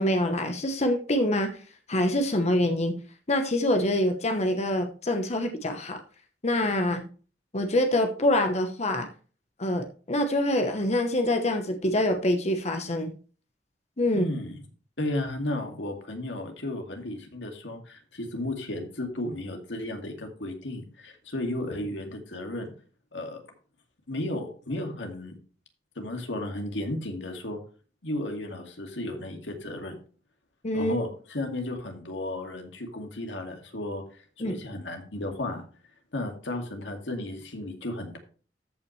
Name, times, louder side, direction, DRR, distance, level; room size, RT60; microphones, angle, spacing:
voice 1, 0.0-1.6 1.9-2.9 3.3-6.0 6.4-7.0 7.5-9.1 9.6-13.1 14.0-14.2 30.6-30.9 34.4-34.5, left 1 dB, 40° left, 5 dB, 1.0 m, -25 dB
voice 2, 14.1-14.5 15.0-22.7 23.1-23.4 24.1-25.4 26.0-27.6 28.0-30.0 30.7-35.6 36.1-38.2, left 1 dB, 85° left, 4 dB, 2.2 m, -34 dB
14.0 x 5.8 x 3.2 m, 0.39 s
head